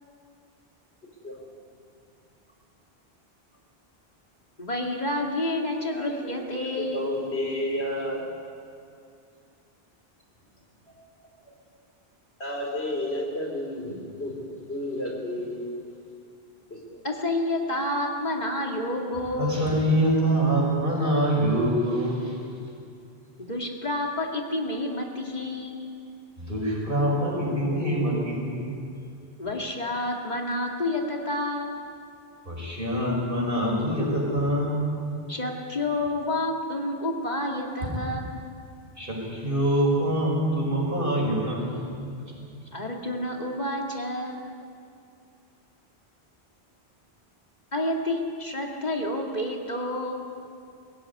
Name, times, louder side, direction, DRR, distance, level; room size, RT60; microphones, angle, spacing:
voice 1, 4.6-7.1 17.0-19.5 23.4-25.8 29.4-31.8 35.3-38.3 42.7-44.4 47.7-50.3, left 1 dB, 45° left, 0 dB, 2.4 m, -29 dB
voice 2, 5.8-8.2 12.4-15.6 16.7-17.0, left 1 dB, 85° left, 0 dB, 4.5 m, -32 dB
voice 3, 19.4-22.4 26.4-28.9 32.5-35.0 39.0-42.1 42.4-42.5, right 1 dB, 55° right, -2 dB, 5.9 m, -25 dB
21.5 x 16.5 x 9.7 m, 2.4 s
omnidirectional pair, 1.0 m